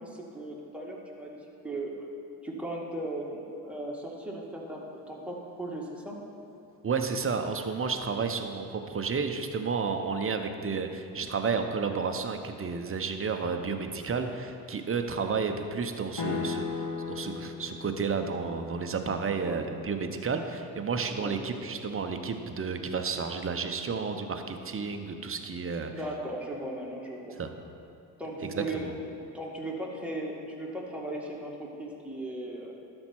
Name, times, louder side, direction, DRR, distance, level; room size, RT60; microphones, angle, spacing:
voice 1, 0.0-1.3 1.6-1.9 2.4-6.2 19.4-19.6 21.2-21.4 25.9-27.4 28.2-32.7, right 1 dB, ahead, -3 dB, 2.1 m, -37 dB
voice 2, 6.8-25.9 27.4-27.5 28.4-28.9, right 5 dB, 25° right, 6 dB, 0.9 m, -31 dB
sound 1, 16.2-20.3, left 5 dB, 50° left, 1.6 m, -37 dB
12.5 x 4.4 x 6.1 m, 2.9 s
hypercardioid pair, 55°, 48 cm